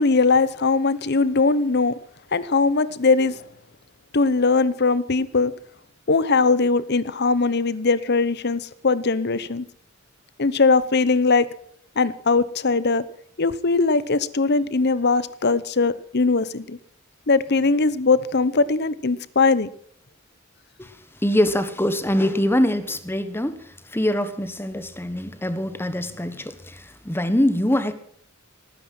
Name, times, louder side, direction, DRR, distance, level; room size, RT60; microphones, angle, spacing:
voice 1, 0.0-2.0 2.3-3.4 4.1-5.5 6.1-9.6 10.4-11.5 12.0-13.0 13.4-16.8 17.3-19.7, left 4 dB, 55° left, 17 dB, 0.9 m, -20 dB
voice 2, 21.2-27.9, left 1 dB, 10° left, 11 dB, 1.3 m, -23 dB
18.5 x 9.9 x 7.7 m, 0.62 s
head